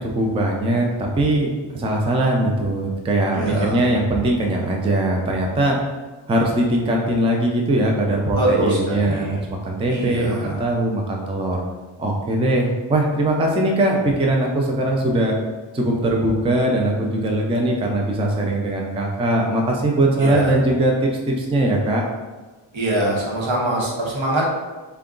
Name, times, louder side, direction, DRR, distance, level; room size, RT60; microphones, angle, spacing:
voice 1, 0.0-5.8 6.3-9.4 9.6-11.6 12.0-15.4 15.7-22.0, right 1 dB, 15° right, 0 dB, 0.3 m, -21 dB
voice 2, 3.4-3.8 8.3-9.4 9.9-10.6 20.2-20.5 22.7-24.4, right 1 dB, 75° right, -3 dB, 1.0 m, -23 dB
3.7 x 2.2 x 3.7 m, 1.3 s
wide cardioid pair, 140°, 48 cm